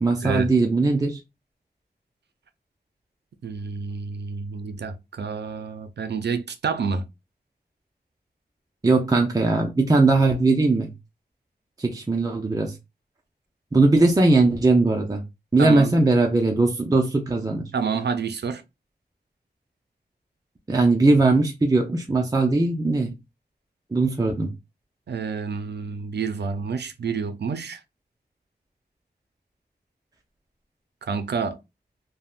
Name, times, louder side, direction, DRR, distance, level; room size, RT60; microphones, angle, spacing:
voice 1, 0.0-1.2 8.8-10.9 11.8-12.8 13.7-15.2 15.5-17.7 20.7-23.2 23.9-24.5, right 3 dB, 20° right, 0.5 m, -20 dB
voice 2, 3.4-7.0 15.6-15.9 17.7-18.6 25.1-27.8 31.0-31.6, right 5 dB, 85° right, 0.4 m, -28 dB
3.5 x 2.1 x 2.4 m
wide cardioid pair, 75°, 17 cm